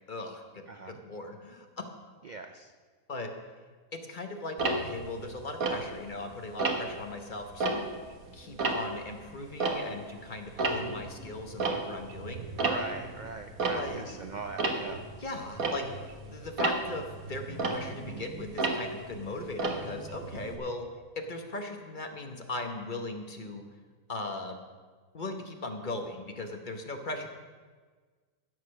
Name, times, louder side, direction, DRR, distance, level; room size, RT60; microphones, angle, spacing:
voice 1, 0.1-1.9 3.1-3.3 3.9-7.9 8.3-12.5 13.7-14.0 15.2-15.9 16.3-20.9 21.2-23.6 24.1-24.6 25.1-27.3, left 2 dB, 35° left, 4 dB, 1.1 m, -38 dB
voice 2, 0.7-1.0 2.2-2.7 12.6-15.0, right 3 dB, 50° right, 6 dB, 0.5 m, -40 dB
Tick-tock, 4.6-6.2 6.6-7.0 7.4-10.2 10.4-20.6, right 3 dB, 70° right, 1.7 m, -33 dB
15.0 x 6.6 x 6.4 m, 1.5 s
omnidirectional pair, 1.5 m